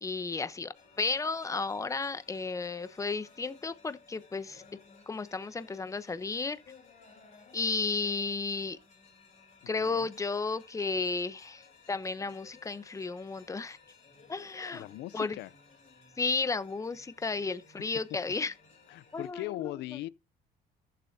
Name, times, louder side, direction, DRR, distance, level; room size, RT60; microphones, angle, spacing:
voice 1, 0.0-4.6 5.1-6.6 7.5-8.8 9.7-13.8 14.3-14.8 15.1-15.4 16.2-18.5 19.1-19.4, left 4 dB, 20° left, 0.9 m, -33 dB
sound 1, 0.7-19.3, left 4 dB, 40° left, 6.2 m, -58 dB
voice 2, 9.6-10.1 14.7-15.5 18.9-20.1, left 17 dB, 80° left, 0.6 m, -39 dB
14.5 x 7.8 x 2.8 m
cardioid pair, 110°, 17 cm